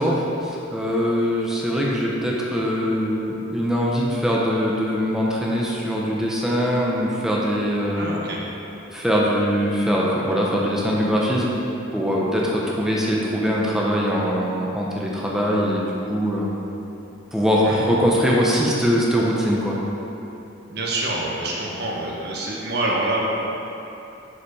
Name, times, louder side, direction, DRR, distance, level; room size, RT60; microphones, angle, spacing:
voice 1, 0.0-8.1 8.9-11.6 11.9-16.5 17.3-19.8, equal, 5° right, -4 dB, 0.8 m, -22 dB
voice 2, 8.0-8.4 17.6-17.8 20.7-23.3, right 1 dB, 55° right, -4 dB, 1.0 m, -26 dB
7.1 x 4.9 x 4.8 m, 3.0 s
head